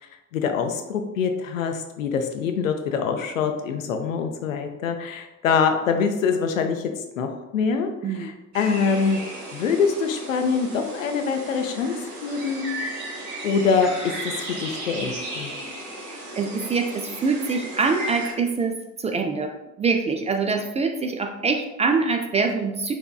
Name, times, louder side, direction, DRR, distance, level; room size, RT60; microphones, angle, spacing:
voice 1, 0.3-7.9 8.1-9.2 9.5-12.0 12.2-12.7 13.4-13.9 14.2-15.5, left 5 dB, 80° left, 6 dB, 0.5 m, -24 dB
sound 1, 8.5-18.3, right 1 dB, 45° right, 1.2 m, -35 dB
voice 2, 16.0-19.5 19.8-22.9, right 4 dB, 20° right, 4 dB, 0.3 m, -24 dB
4.4 x 4.2 x 2.3 m, 0.98 s
figure-of-eight pair, 50°, 39 cm